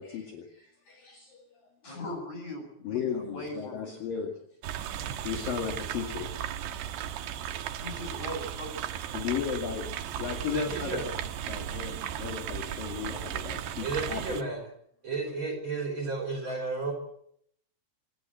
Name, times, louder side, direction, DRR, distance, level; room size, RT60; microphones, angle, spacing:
voice 1, 0.0-1.4 2.8-4.3 4.7-6.3 7.3-8.0 9.1-9.9 10.2-11.1 11.5-14.5 16.3-16.8, left 8 dB, 55° left, 2 dB, 3.7 m, -36 dB
voice 2, 1.8-4.2 7.8-9.1, left 1 dB, 40° left, 4 dB, 8.9 m, -40 dB
sound 1, 4.6-14.4, right 10 dB, 75° right, 3.4 m, -36 dB
voice 3, 10.4-11.0 13.8-14.7 15.0-16.9, right 3 dB, 25° right, 4 dB, 5.3 m, -33 dB
26.0 x 19.0 x 7.9 m, 0.70 s
omnidirectional pair, 5.2 m